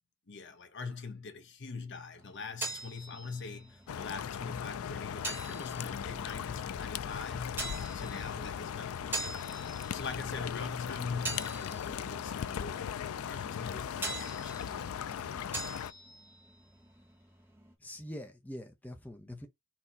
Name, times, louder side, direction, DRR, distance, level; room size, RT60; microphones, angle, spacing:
voice 1, 0.3-9.4 9.9-12.9 13.2-14.6 19.3-19.4, left 4 dB, 55° left, 1.0 m, -42 dB
sound 1, 2.2-17.7, right 2 dB, 10° right, 1.2 m, -44 dB
sound 2, 3.9-15.9, left 8 dB, 75° left, 0.4 m, -38 dB
voice 2, 17.8-19.5, left 1 dB, 5° left, 0.7 m, -44 dB
4.4 x 3.0 x 3.9 m
head